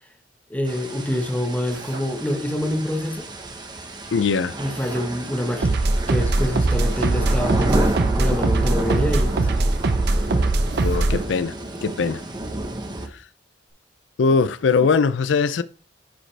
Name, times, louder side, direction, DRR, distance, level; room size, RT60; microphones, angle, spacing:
voice 1, 0.5-3.3 4.6-5.8 6.1-9.7, left 1 dB, 10° left, 1.1 m, -26 dB
sound 1, 0.7-13.1, right 1 dB, 25° right, 1.0 m, -31 dB
Drill, 1.7-2.1 4.7-5.1 7.7-8.1 10.7-11.1, right 2 dB, 80° right, 2.3 m, -39 dB
voice 2, 4.1-4.5 10.8-11.5 11.8-12.2 13.1-13.2 14.2-15.6, left 5 dB, 85° left, 0.4 m, -21 dB
sound 2, 5.6-11.2, right 2 dB, 65° right, 0.7 m, -21 dB
10.0 x 5.1 x 3.3 m
head